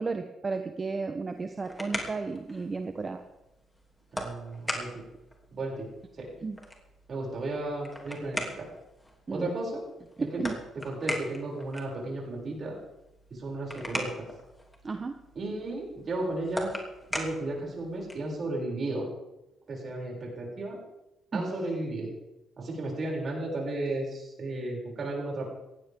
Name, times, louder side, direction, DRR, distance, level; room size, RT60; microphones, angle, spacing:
voice 1, 0.0-3.2 6.4-6.6 9.3-9.5 10.2-10.5 14.8-15.2 21.3-21.5, right 4 dB, 30° right, 6 dB, 1.1 m, -33 dB
sound 1, 1.3-18.4, left 1 dB, 10° left, 3.1 m, -41 dB
voice 2, 4.1-5.0 5.5-5.9 6.2-6.3 7.1-8.7 9.3-9.8 10.8-12.8 13.3-14.3 15.4-16.7 17.1-19.1 19.7-20.8 21.3-22.1 22.6-25.5, right 2 dB, 45° right, -2 dB, 7.3 m, -34 dB
18.0 x 15.0 x 3.8 m, 0.93 s
cardioid pair, 90°, 0 cm